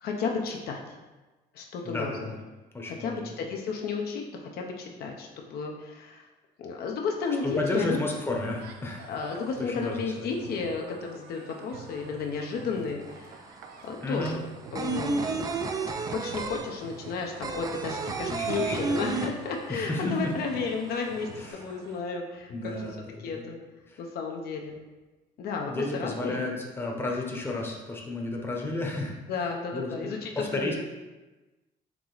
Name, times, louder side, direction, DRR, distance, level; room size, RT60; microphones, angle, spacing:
voice 1, 0.0-0.8 1.5-2.1 2.9-4.2 4.5-6.3 6.6-8.0 9.1-15.5 16.0-22.5 23.2-23.6 24.0-24.8 25.4-26.4 29.3-30.7, left 5 dB, 70° left, 1 dB, 0.7 m, -33 dB
voice 2, 1.8-2.4 2.7-3.4 7.4-9.1 9.6-10.3 14.0-14.4 18.3-19.1 19.7-20.3 21.4-21.6 22.5-23.4 23.9-24.0 25.6-29.2 29.7-30.7, left 2 dB, 15° left, -1 dB, 0.8 m, -32 dB
sound 1, 7.2-22.0, right 5 dB, 75° right, 0.5 m, -48 dB
sound 2, 13.0-13.1 13.4-20.0 20.2-20.3 20.6-21.4, right 4 dB, 20° right, 0.3 m, -31 dB
4.7 x 2.9 x 3.9 m, 1.2 s
cardioid pair, 110°, 17 cm